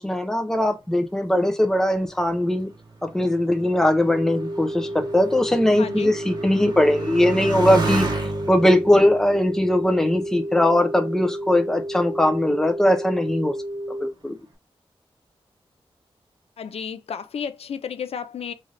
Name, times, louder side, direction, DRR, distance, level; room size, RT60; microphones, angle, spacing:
voice 1, 0.0-2.7 3.0-8.1 8.5-13.5 13.9-14.4, left 1 dB, 5° left, 0.5 m, -20 dB
Motorcycle, 2.0-11.0 11.7-12.3, right 3 dB, 45° right, 1.1 m, -33 dB
sound 1, 4.1-14.1, right 1 dB, 30° left, 0.9 m, -32 dB
voice 2, 5.8-6.1 16.6-18.5, left 7 dB, 80° left, 0.4 m, -32 dB
3.2 x 2.6 x 4.0 m
wide cardioid pair, 145°, 10 cm